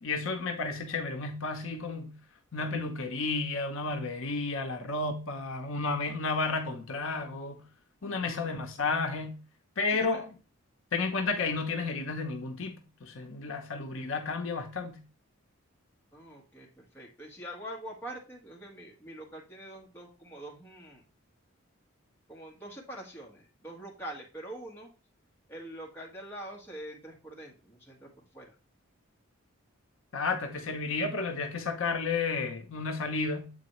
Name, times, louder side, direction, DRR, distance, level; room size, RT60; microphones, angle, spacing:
voice 1, 0.0-2.1 2.5-7.6 8.0-9.4 9.8-10.3 10.9-15.0 30.1-33.5, left 3 dB, 65° left, 0.7 m, -32 dB
voice 2, 8.2-8.9 9.9-10.2 16.1-21.0 22.3-24.9 25.5-28.5, right 1 dB, 10° left, 1.4 m, -44 dB
7.7 x 4.1 x 3.0 m
head